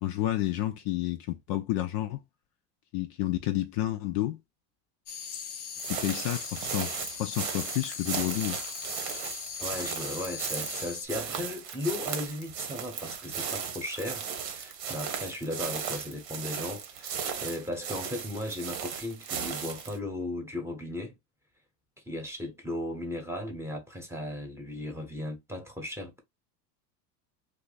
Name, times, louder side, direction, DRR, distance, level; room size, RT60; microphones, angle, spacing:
voice 1, 0.0-2.2 2.9-4.4 5.9-8.6, left 14 dB, 50° left, 0.5 m, -30 dB
sound 1, 5.1-11.1, left 7 dB, 90° left, 0.9 m, -39 dB
sound 2, 5.8-20.0, right 7 dB, 80° right, 1.2 m, -36 dB
voice 2, 9.6-21.1 22.1-26.2, left 1 dB, 5° right, 0.9 m, -36 dB
2.8 x 2.4 x 3.9 m
hypercardioid pair, 105°, 49 cm